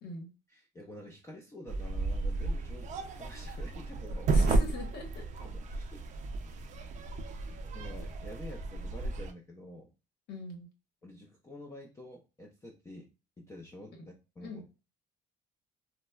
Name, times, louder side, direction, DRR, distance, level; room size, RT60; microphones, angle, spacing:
voice 1, 0.5-4.3 5.4-6.1 7.7-9.9 11.0-13.1 13.4-14.6, left 1 dB, 15° left, 1 dB, 0.5 m, -48 dB
sound 1, 1.7-9.3, right 3 dB, 45° right, 0.4 m, -33 dB
voice 2, 4.3-5.2 10.3-10.7 14.0-14.1 14.4-14.6, left 2 dB, 75° left, 3 dB, 1.0 m, -42 dB
3.9 x 2.1 x 2.2 m, 0.30 s
cardioid pair, 110°, 17 cm